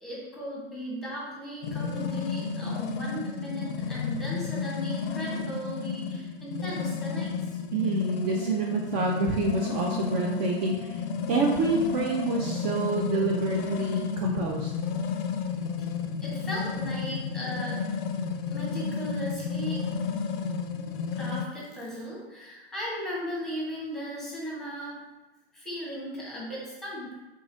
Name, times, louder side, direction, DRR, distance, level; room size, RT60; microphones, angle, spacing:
voice 1, 0.0-7.3 15.8-15.9 16.2-17.8 18.5-19.8 21.1-25.0 25.5-27.1, equal, ahead, -5 dB, 1.0 m, -37 dB
sound 1, 1.6-21.5, left 5 dB, 55° left, 0.4 m, -32 dB
voice 2, 7.7-11.0 11.3-14.7, right 3 dB, 40° right, 0 dB, 0.4 m, -27 dB
3.5 x 3.1 x 2.6 m, 1.1 s
hypercardioid pair, 115°, 32 cm